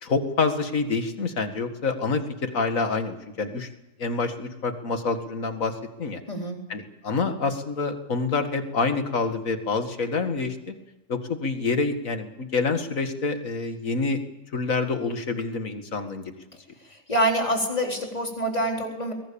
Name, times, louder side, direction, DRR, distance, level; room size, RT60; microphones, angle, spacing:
voice 1, 0.0-3.7 4.0-5.7 6.0-6.2 6.7-10.7 11.1-14.2 14.5-16.3, left 4 dB, 65° left, 7 dB, 2.3 m, -27 dB
voice 2, 6.3-6.6 16.8-19.1, right 1 dB, 25° left, 1 dB, 4.2 m, -26 dB
22.5 x 18.5 x 8.7 m, 0.96 s
omnidirectional pair, 1.5 m